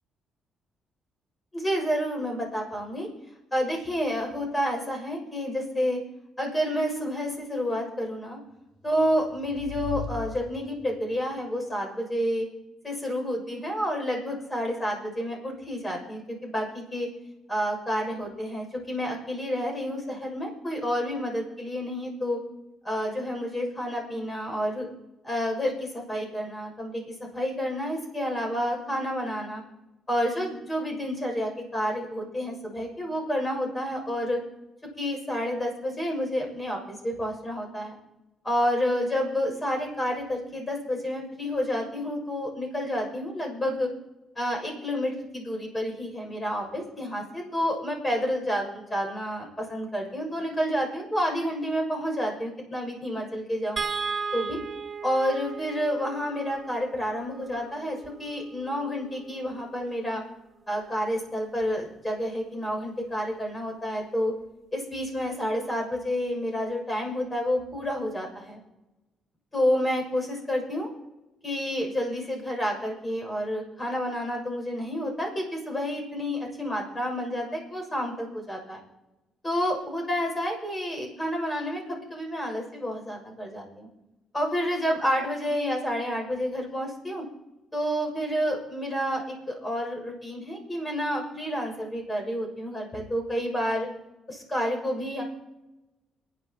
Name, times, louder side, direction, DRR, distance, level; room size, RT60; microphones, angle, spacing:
voice 1, 1.5-3.1 3.5-6.0 6.4-8.4 8.8-12.5 12.8-17.1 17.5-22.4 22.8-24.9 25.2-27.0 27.3-29.6 30.1-34.4 35.0-37.9 38.4-43.9 44.3-53.8 54.3-54.6 55.0-60.2 60.7-64.3 64.7-68.6 69.5-70.9 71.4-78.8 79.4-83.9 84.3-87.2 87.7-93.9 94.3-95.2, equal, 20° left, 0 dB, 6.8 m, -29 dB
sound 1, 8.8-11.2, left 8 dB, 85° left, 2.6 m, -39 dB
sound 2, 53.8-60.1 61.6-61.8 62.1-62.3, right 5 dB, 30° right, 1.7 m, -37 dB
29.5 x 10.5 x 3.1 m, 1.0 s
cardioid pair, 90°, 0 cm